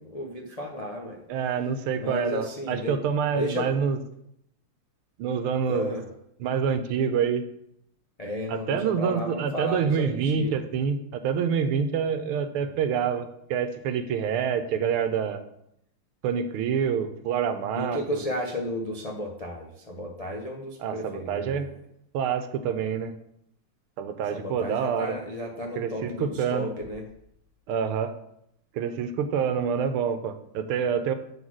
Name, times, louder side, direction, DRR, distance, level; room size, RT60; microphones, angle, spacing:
voice 1, 0.0-1.2 2.0-3.0 3.3-3.7 5.7-6.0 8.2-10.6 12.6-12.7 17.7-21.7 24.3-27.0, left 1 dB, 80° left, -1 dB, 0.3 m, -33 dB
voice 2, 1.3-4.0 5.2-5.9 6.4-7.4 8.5-15.4 16.2-18.2 20.8-21.7 22.1-23.1 24.0-25.2 25.8-26.7 27.7-28.1 28.7-31.1, right 7 dB, 85° right, 9 dB, 1.6 m, -27 dB
7.6 x 4.0 x 6.2 m, 0.76 s
omnidirectional pair, 2.3 m